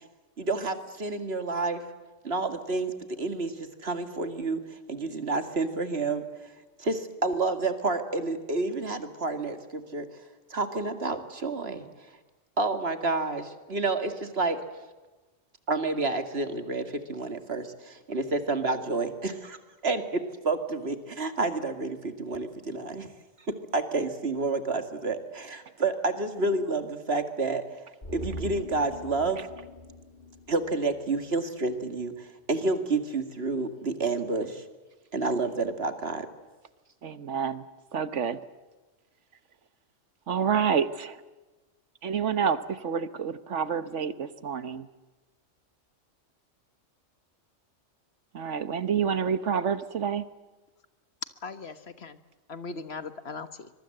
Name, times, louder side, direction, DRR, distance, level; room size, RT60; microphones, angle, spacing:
voice 1, 0.4-1.8 2.2-6.5 6.8-10.1 10.5-11.9 12.6-14.6 15.7-19.6 19.8-23.1 23.5-27.6 28.1-29.4 30.5-34.6 35.1-36.3, right 3 dB, 55° right, 8 dB, 2.3 m, -29 dB
sound 1, 28.0-31.4 31.7-31.8, left 1 dB, 40° left, 3.3 m, -42 dB
voice 2, 37.0-37.6 37.9-38.4 40.3-41.2 42.0-44.9 48.3-50.3, right 7 dB, 70° right, 13 dB, 1.3 m, -28 dB
voice 3, 51.4-52.2 52.5-53.7, left 4 dB, 55° left, 11 dB, 1.5 m, -39 dB
25.0 x 23.0 x 7.8 m, 1.2 s
omnidirectional pair, 1.3 m